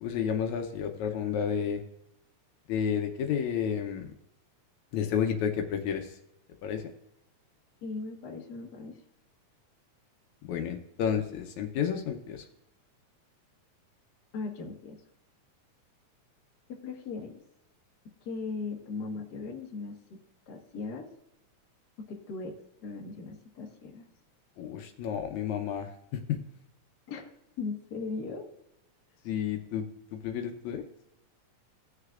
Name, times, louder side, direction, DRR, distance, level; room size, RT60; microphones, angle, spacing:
voice 1, 0.0-1.8 2.7-4.1 4.9-6.1 6.6-6.8 10.4-12.4 24.6-26.4 29.3-29.8 30.1-30.8, left 8 dB, 75° left, 4 dB, 2.1 m, -31 dB
voice 2, 7.8-9.0 14.3-15.0 16.7-17.4 18.2-20.0 20.5-21.0 22.0-22.5 22.8-24.0 27.1-27.3 27.6-28.4, left 4 dB, 45° left, 0 dB, 1.6 m, -38 dB
18.0 x 6.5 x 2.5 m, 0.83 s
omnidirectional pair, 3.4 m